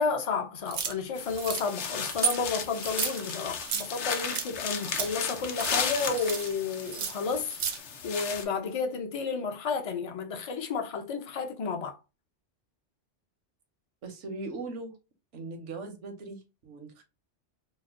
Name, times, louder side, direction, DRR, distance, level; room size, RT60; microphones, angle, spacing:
voice 1, 0.0-7.6 8.0-12.0, left 5 dB, 50° left, 0.4 m, -31 dB
sound 1, 0.7-0.9 1.3-1.7 2.1-2.4 2.8-3.9 4.3-4.5 4.8-5.1 5.5-6.5 6.8-7.8, right 6 dB, 60° right, 0.5 m, -33 dB
sound 2, 1.1-8.4, left 6 dB, 75° left, 0.9 m, -35 dB
voice 2, 14.0-15.0 15.3-17.0, right 3 dB, 80° right, 1.1 m, -39 dB
3.1 x 2.1 x 3.5 m
omnidirectional pair, 1.2 m